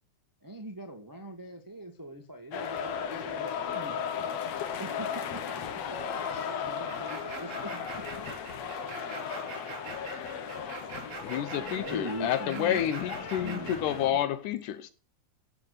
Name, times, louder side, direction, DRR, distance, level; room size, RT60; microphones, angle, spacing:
voice 1, 0.4-4.3 4.8-5.2 6.3-8.0 11.4-12.8 13.2-14.2, right 1 dB, 15° right, 0.7 m, -42 dB
sound 1, 2.5-14.1, left 7 dB, 60° left, 2.2 m, -36 dB
voice 2, 5.5-7.4 7.7-8.1 8.5-11.6, right 1 dB, 10° left, 5.5 m, -53 dB
sound 2, 6.9-14.0, right 5 dB, 65° right, 5.8 m, -43 dB
voice 3, 11.2-14.9, left 10 dB, 80° left, 2.3 m, -29 dB
15.5 x 8.2 x 6.6 m
omnidirectional pair, 3.7 m